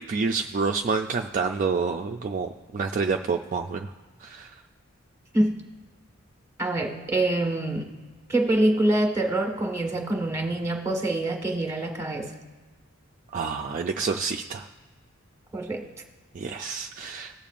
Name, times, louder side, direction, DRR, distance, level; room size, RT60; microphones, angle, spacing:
voice 1, 0.0-3.9 4.2-4.5 13.3-14.7 16.3-17.3, right 4 dB, 40° right, 2 dB, 0.3 m, -28 dB
voice 2, 6.6-7.9 8.3-12.3 15.5-15.9, right 1 dB, 15° right, 1 dB, 1.4 m, -25 dB
19.5 x 7.0 x 2.5 m, 1.3 s
head